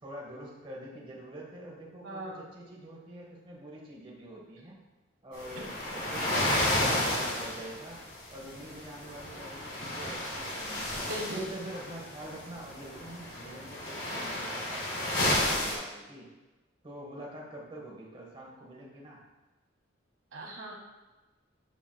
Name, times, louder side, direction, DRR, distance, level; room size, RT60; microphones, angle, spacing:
voice 1, 0.0-4.8 5.2-8.0 8.3-10.9 11.3-16.3 16.8-19.2, right 1 dB, 25° right, -3 dB, 1.1 m, -45 dB
voice 2, 2.0-2.5 11.1-11.4 20.3-20.7, equal, 85° right, -1 dB, 1.2 m, -38 dB
sound 1, 5.3-15.7, left 1 dB, 70° left, 2.0 m, -32 dB
6.8 x 6.2 x 2.2 m, 1.1 s
head